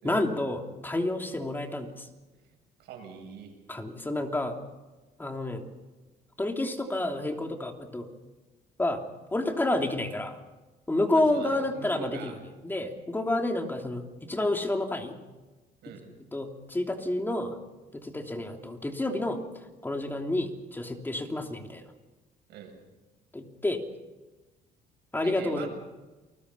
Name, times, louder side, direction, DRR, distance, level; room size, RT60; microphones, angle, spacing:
voice 1, 0.0-2.1 3.7-4.6 5.2-5.6 6.4-8.1 8.8-9.0 9.3-10.4 10.9-12.3 12.6-15.2 15.9-16.0 16.3-17.6 17.9-19.4 19.8-21.8 23.3-23.8 25.1-25.7, left 2 dB, 10° left, 3 dB, 3.0 m, -29 dB
voice 2, 2.8-3.5 11.1-12.3 15.8-16.1 22.5-22.7 25.2-25.7, right 6 dB, 80° right, 3 dB, 7.5 m, -41 dB
29.5 x 20.5 x 5.7 m, 1.2 s
cardioid pair, 110°, 17 cm